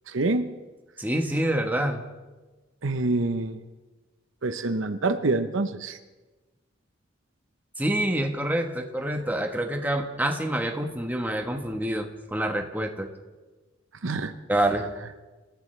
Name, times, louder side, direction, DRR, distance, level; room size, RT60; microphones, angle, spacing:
voice 1, 0.1-0.5 2.8-3.6 4.4-6.0 14.0-14.3, right 2 dB, 75° right, 9 dB, 0.8 m, -26 dB
voice 2, 1.0-2.0 7.8-13.1 14.5-14.9, right 1 dB, 10° right, 4 dB, 1.2 m, -27 dB
27.5 x 15.0 x 3.3 m, 1.2 s
head